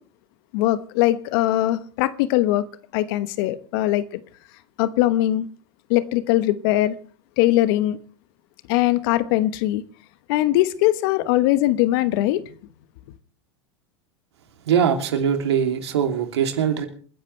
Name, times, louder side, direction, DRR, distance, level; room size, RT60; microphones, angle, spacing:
voice 1, 0.5-2.7 2.9-4.2 4.8-5.5 5.9-7.0 7.4-8.0 8.7-9.8 10.3-12.5, left 15 dB, 60° left, 1.1 m, -21 dB
voice 2, 14.6-16.9, right 8 dB, 75° right, 2.9 m, -21 dB
27.5 x 10.5 x 3.3 m
hypercardioid pair, 95°, 14 cm